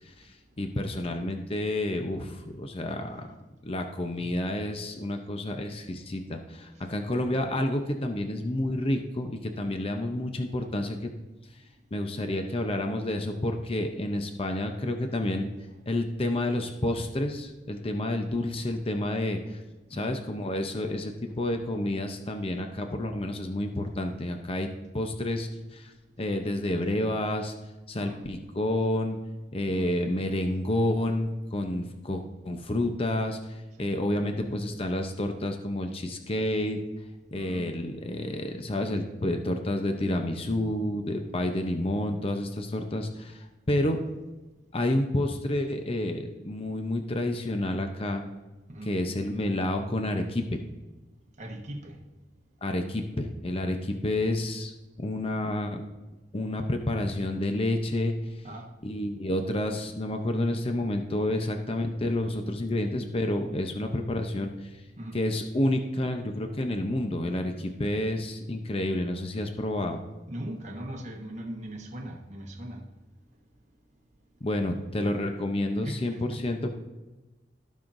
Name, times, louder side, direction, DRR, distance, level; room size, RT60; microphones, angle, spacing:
voice 1, 0.6-3.3 3.6-11.1 11.9-15.5 15.9-19.6 19.9-24.7 24.9-25.9 26.2-27.5 27.9-29.2 29.5-36.8 37.3-44.0 44.7-48.2 48.9-50.6 52.6-54.7 55.0-55.8 56.3-58.1 58.8-64.7 65.1-70.0 74.4-76.7, left 1 dB, 35° left, 0.7 m, -29 dB
voice 2, 19.9-20.2 27.9-28.2 29.7-29.9 33.8-34.0 37.3-37.7 48.7-48.9 51.4-52.0 58.4-58.7 65.0-65.2 70.3-72.8 74.6-74.8 75.8-76.4, right 1 dB, 45° right, 1.3 m, -40 dB
16.5 x 5.6 x 2.6 m
head